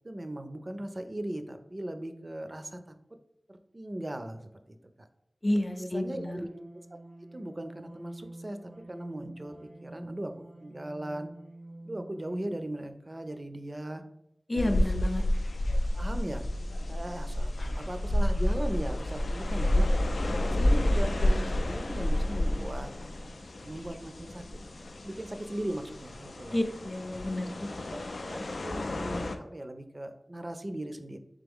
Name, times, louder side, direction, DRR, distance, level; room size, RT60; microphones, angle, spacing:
voice 1, 0.0-2.9 3.5-5.1 5.8-6.5 6.9-7.0 7.3-11.3 11.9-14.0 14.5-14.8 15.7-16.4 16.9-19.9 20.5-23.3 23.6-24.4 25.0-26.6 27.9-31.2, right 1 dB, 35° right, 8 dB, 0.4 m, -38 dB
voice 2, 5.4-6.4 14.5-15.2 26.5-27.7, left 1 dB, 25° left, 5 dB, 0.5 m, -30 dB
sound 1, 6.0-12.8, right 2 dB, 85° right, 0.8 m, -49 dB
sound 2, 14.6-29.4, left 1 dB, 90° left, 0.3 m, -30 dB
3.6 x 3.4 x 3.5 m, 0.82 s
wide cardioid pair, 70°, 0 cm